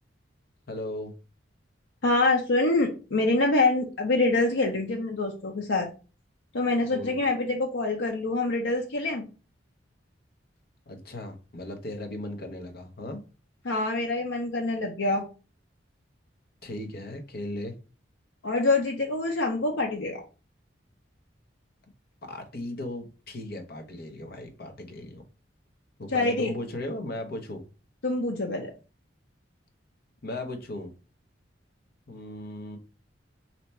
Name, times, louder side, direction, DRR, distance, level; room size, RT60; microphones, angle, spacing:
voice 1, 0.7-1.1 6.9-7.2 10.9-13.2 16.6-17.8 22.2-25.2 26.0-27.7 30.2-30.9 32.1-32.8, left 1 dB, 55° left, 5 dB, 0.9 m, -37 dB
voice 2, 2.0-5.9 6.5-9.2 13.6-15.2 18.4-20.2 26.1-26.5 28.0-28.7, left 2 dB, 90° left, 1 dB, 0.7 m, -25 dB
3.4 x 2.9 x 4.1 m, 0.33 s
head